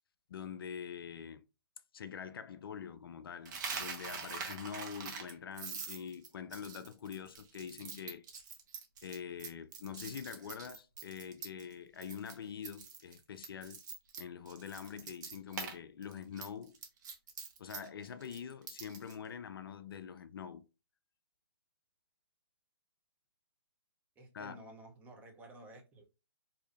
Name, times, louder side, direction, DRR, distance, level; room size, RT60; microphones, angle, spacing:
voice 1, 0.3-1.5 1.9-8.3 9.0-13.8 14.2-16.8 17.6-20.7 24.3-24.6, left 7 dB, 55° left, 0.4 m, -45 dB
Coin (dropping), 3.4-11.7 12.0-12.3 12.6-15.7 16.0-19.1, right 5 dB, 40° right, 1.0 m, -44 dB
voice 2, 24.2-26.0, right 1 dB, 10° right, 0.7 m, -53 dB
4.8 x 2.7 x 2.4 m
hypercardioid pair, 140°, 14 cm